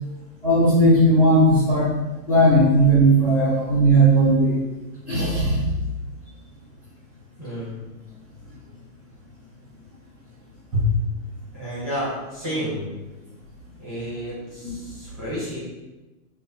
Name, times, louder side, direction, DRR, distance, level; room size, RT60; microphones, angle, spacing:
voice 1, 0.4-1.9 2.3-4.6 5.1-5.6 14.6-14.7, right 1 dB, 25° left, -15 dB, 0.4 m, -17 dB
voice 2, 7.4-7.7 10.7-10.9 11.5-12.9 13.8-15.6, equal, 15° right, -10 dB, 0.6 m, -29 dB
2.3 x 2.1 x 3.6 m, 1.1 s
supercardioid pair, 180°, 45 cm